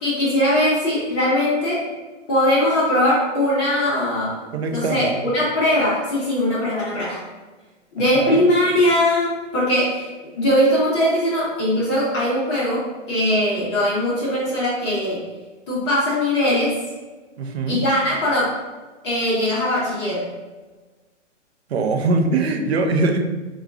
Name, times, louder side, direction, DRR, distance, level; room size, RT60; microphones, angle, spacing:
voice 1, 0.0-1.8 2.3-4.4 4.7-7.2 8.0-10.1 10.4-15.2 15.7-16.8 17.7-18.6 19.0-20.3, left 1 dB, 20° left, -8 dB, 0.7 m, -20 dB
voice 2, 4.5-5.3 8.1-8.4 17.4-17.8 21.7-23.2, right 3 dB, 60° right, 5 dB, 0.6 m, -22 dB
3.6 x 2.3 x 3.4 m, 1.2 s
hypercardioid pair, 155°, 36 cm